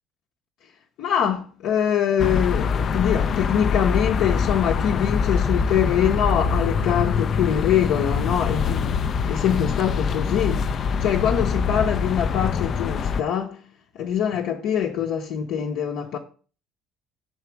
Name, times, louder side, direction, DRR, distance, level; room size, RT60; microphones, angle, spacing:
voice 1, 1.0-13.6 13.9-16.2, left 9 dB, 70° left, 0.8 m, -24 dB
sound 1, 2.2-13.2, left 6 dB, 45° left, 0.5 m, -24 dB
6.1 x 4.3 x 4.6 m
supercardioid pair, 95°, 0 cm